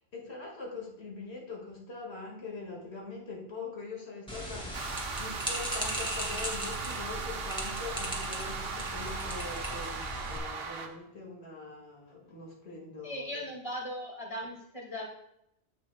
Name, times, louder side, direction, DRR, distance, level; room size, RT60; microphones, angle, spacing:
voice 1, 0.0-4.8 5.2-13.5, left 3 dB, 75° left, -1 dB, 2.3 m, -43 dB
sound 1, 4.3-10.4, right 1 dB, 5° left, 2.1 m, -38 dB
sound 2, 4.7-10.9, right 4 dB, 65° right, 1.1 m, -38 dB
voice 2, 13.0-15.0, equal, 30° left, -2 dB, 2.3 m, -38 dB
15.0 x 6.1 x 2.3 m, 0.79 s
omnidirectional pair, 1.1 m